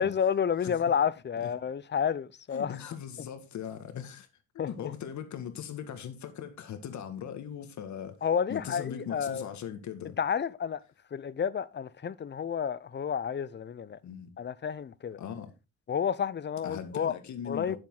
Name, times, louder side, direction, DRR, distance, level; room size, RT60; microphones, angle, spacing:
voice 1, 0.0-2.8 4.6-4.9 8.2-9.4 10.2-10.8 11.1-14.0 14.4-15.2 15.9-17.2 17.5-17.8, left 7 dB, 35° left, 0.7 m, -30 dB
voice 2, 2.5-4.3 4.5-8.2 8.5-10.2 14.0-14.3 15.2-15.5 16.6-17.8, left 8 dB, 70° left, 2.0 m, -39 dB
10.0 x 7.5 x 3.9 m
cardioid pair, 90°, 30 cm